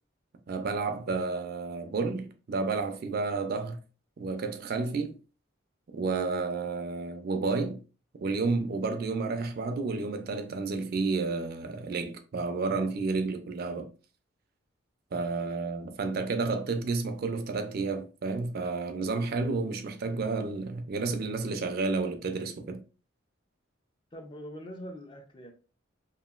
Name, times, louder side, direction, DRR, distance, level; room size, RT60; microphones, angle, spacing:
voice 1, 0.5-3.8 4.2-5.2 5.9-7.8 8.1-13.9 15.1-22.8, right 4 dB, 50° right, 0.4 m, -31 dB
voice 2, 24.1-25.5, equal, 25° left, 0.4 m, -43 dB
2.8 x 2.5 x 2.3 m
head